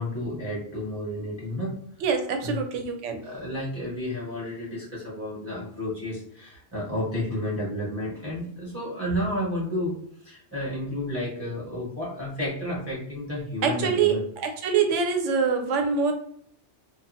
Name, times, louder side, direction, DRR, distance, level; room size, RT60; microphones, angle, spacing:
voice 1, 0.0-1.8 2.4-2.6 3.2-10.0 10.2-14.2, left 1 dB, 15° right, -7 dB, 0.9 m, -31 dB
voice 2, 2.0-3.2 13.6-16.1, right 5 dB, 80° right, 5 dB, 0.9 m, -24 dB
2.5 x 2.3 x 2.7 m, 0.64 s
omnidirectional pair, 1.3 m